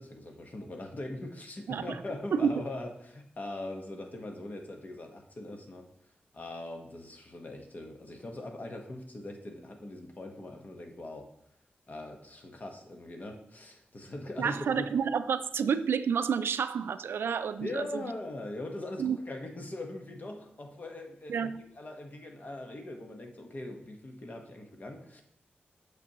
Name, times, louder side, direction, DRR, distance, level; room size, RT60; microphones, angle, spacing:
voice 1, 0.0-5.9 6.3-11.3 11.9-14.9 17.6-25.2, left 1 dB, 45° left, 1.1 m, -41 dB
voice 2, 14.4-18.0 19.0-19.2 21.3-21.6, right 7 dB, 80° right, 0.3 m, -29 dB
8.1 x 6.1 x 3.0 m
cardioid pair, 70°, 4 cm